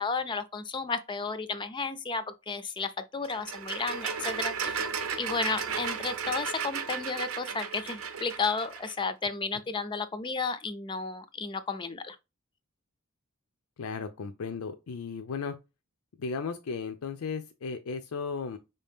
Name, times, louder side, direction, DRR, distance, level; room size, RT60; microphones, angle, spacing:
voice 1, 0.0-4.8 5.2-12.2, left 4 dB, 20° left, 0.4 m, -33 dB
sound 1, 3.2-8.9, right 6 dB, 75° right, 0.7 m, -34 dB
voice 2, 13.8-15.6 16.2-18.6, left 5 dB, 90° left, 0.5 m, -35 dB
5.4 x 2.7 x 3.4 m
head